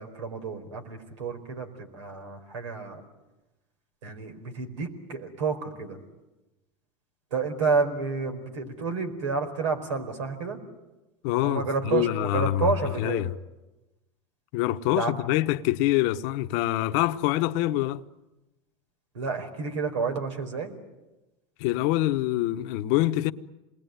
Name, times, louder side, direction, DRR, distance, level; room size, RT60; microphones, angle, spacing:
voice 1, 0.0-3.0 4.0-6.0 7.3-10.6 11.4-13.2 14.9-15.1 19.1-20.7, right 4 dB, 85° right, 4.6 m, -30 dB
voice 2, 11.2-12.7 13.0-13.3 14.5-18.0 21.6-23.3, left 15 dB, 60° left, 1.0 m, -25 dB
27.5 x 21.0 x 9.4 m
hypercardioid pair, 100°, 15 cm